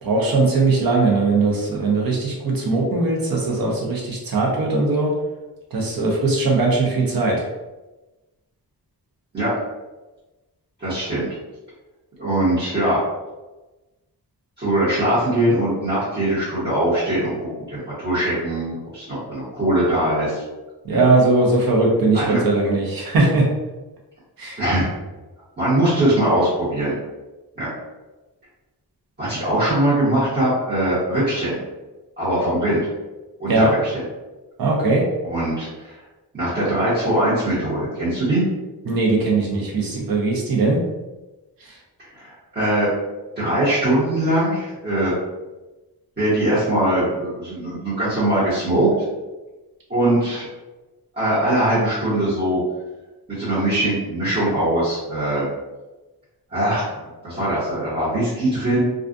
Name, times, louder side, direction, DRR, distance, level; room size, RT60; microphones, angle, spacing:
voice 1, 0.0-5.1 5.7-7.5 20.8-23.5 24.4-24.6 33.5-33.7 34.6-35.1 38.9-40.8 41.6-41.8, right 3 dB, 65° right, -2 dB, 0.7 m, -19 dB
voice 2, 10.8-11.3 12.2-13.0 14.6-20.4 20.9-21.0 22.1-22.4 24.6-24.9 25.6-26.9 27.6-27.7 29.2-31.6 32.2-32.8 33.4-33.9 35.2-36.0 36.3-38.4 42.1-42.9 43.4-45.1 46.2-48.9 49.9-50.5 51.2-52.6 53.4-55.5 56.5-56.9 57.2-58.8, right 1 dB, 25° right, -13 dB, 1.1 m, -21 dB
2.4 x 2.3 x 2.5 m, 1.1 s
wide cardioid pair, 155°, 39 cm